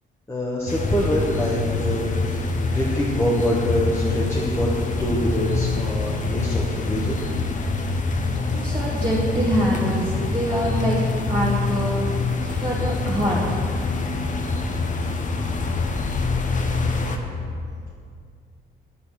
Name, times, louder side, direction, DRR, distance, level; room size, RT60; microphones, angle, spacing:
voice 1, 0.3-2.5 2.7-4.7 5.0-7.1, equal, 10° left, -4 dB, 1.1 m, -25 dB
sound 1, 0.7-17.2, left 3 dB, 40° left, 0.8 m, -25 dB
voice 2, 8.2-11.0 11.3-13.7, equal, 25° right, -8 dB, 1.5 m, -25 dB
10.5 x 4.1 x 6.2 m, 2.3 s
cardioid pair, 90°, 20 cm